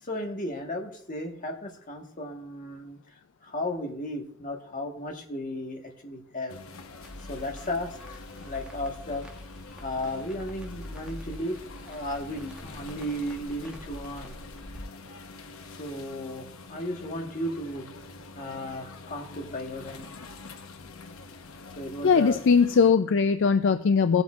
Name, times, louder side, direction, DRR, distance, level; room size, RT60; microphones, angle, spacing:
voice 1, 0.0-6.6 7.2-9.3 9.8-11.6 11.8-14.3 15.7-17.9 18.3-20.1 21.7-22.4, left 1 dB, 40° left, 3 dB, 1.4 m, -35 dB
sound 1, 6.5-22.9, left 3 dB, 80° left, 0.9 m, -46 dB
Crackle, 7.0-14.8, left 1 dB, 5° right, 1.2 m, -45 dB
voice 2, 22.0-24.2, left 5 dB, 60° left, 10 dB, 0.4 m, -20 dB
18.5 x 7.9 x 2.4 m, 0.65 s
head